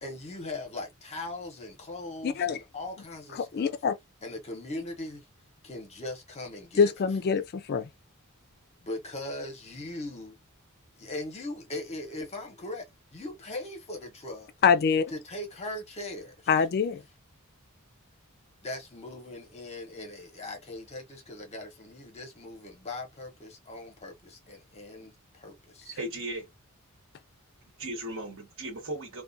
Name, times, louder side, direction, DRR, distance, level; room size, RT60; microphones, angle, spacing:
voice 1, 0.0-3.7 4.2-5.3 5.6-6.9 7.3-7.4 8.8-10.4 11.0-12.9 13.1-14.5 15.1-16.5 18.6-26.0, left 2 dB, 30° left, 0.8 m, -39 dB
voice 2, 2.2-2.6 3.3-4.0 6.8-7.9 14.6-15.0 16.5-17.0, left 6 dB, 45° left, 0.3 m, -24 dB
voice 3, 25.8-26.5 27.8-29.2, right 1 dB, 65° right, 1.2 m, -37 dB
2.4 x 2.2 x 2.5 m
head